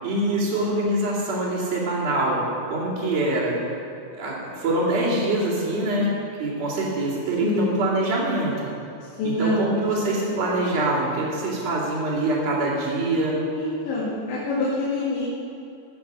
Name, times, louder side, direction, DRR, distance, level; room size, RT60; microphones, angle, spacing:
voice 1, 0.0-2.4 2.7-3.6 4.1-6.1 6.4-8.7 9.2-13.4, right 1 dB, 40° right, -10 dB, 3.1 m, -24 dB
voice 2, 7.4-7.8 9.2-10.5 13.6-15.3, left 1 dB, 65° left, -9 dB, 4.3 m, -26 dB
16.5 x 7.1 x 6.4 m, 2.6 s
omnidirectional pair, 5.9 m